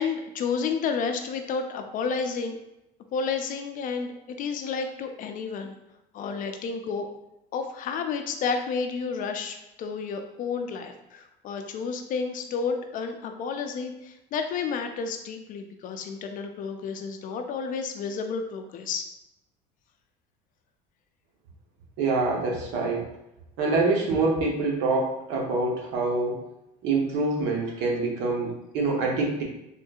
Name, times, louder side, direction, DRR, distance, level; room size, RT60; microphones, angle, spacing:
voice 1, 0.0-2.6 3.1-5.7 6.1-7.1 7.5-19.1, left 5 dB, 45° left, 6 dB, 0.4 m, -31 dB
voice 2, 22.0-23.1 23.6-26.4 26.8-29.4, right 3 dB, 75° right, -1 dB, 0.9 m, -25 dB
3.6 x 2.6 x 2.3 m, 0.89 s
cardioid pair, 120°, 19 cm